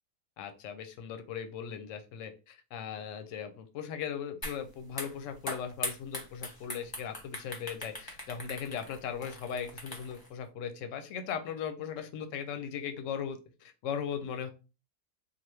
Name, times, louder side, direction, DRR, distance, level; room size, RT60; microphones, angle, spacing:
voice 1, 0.4-14.5, left 7 dB, 65° left, 8 dB, 0.9 m, -38 dB
sound 1, 4.4-4.6 4.9-10.3, left 1 dB, 20° left, 0.8 m, -40 dB
4.0 x 2.3 x 3.2 m, 0.31 s
omnidirectional pair, 1.6 m